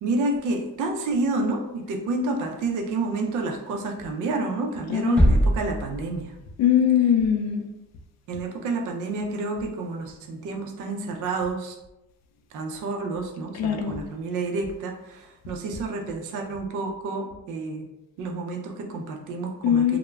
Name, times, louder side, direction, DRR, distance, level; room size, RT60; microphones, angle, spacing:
voice 1, 0.0-6.3 8.3-11.8 12.5-17.9 18.2-20.0, right 3 dB, 80° right, 4 dB, 0.5 m, -29 dB
voice 2, 4.9-5.2 6.6-7.6 13.5-14.0 19.6-20.0, left 9 dB, 60° left, 5 dB, 0.4 m, -21 dB
sound 1, 5.2-6.6, equal, 5° left, 0.5 m, -22 dB
2.3 x 2.1 x 3.1 m, 0.94 s
cardioid pair, 90°, 30 cm